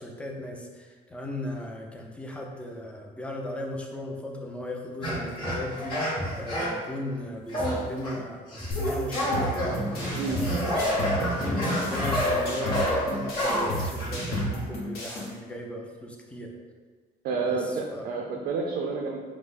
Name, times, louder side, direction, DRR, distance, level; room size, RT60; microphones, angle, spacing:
voice 1, 0.0-6.0 6.3-16.6 17.4-18.0, left 1 dB, 5° left, 1 dB, 0.4 m, -37 dB
sound 1, 5.0-6.8 7.5-8.2 8.5-14.7, equal, 30° left, 1.3 m, -28 dB
sound 2, 8.7-15.3, left 1 dB, 70° left, 1.0 m, -33 dB
voice 2, 17.2-19.2, right 4 dB, 70° right, 0 dB, 0.4 m, -29 dB
5.0 x 2.0 x 2.5 m, 1.5 s
cardioid pair, 110°, 17 cm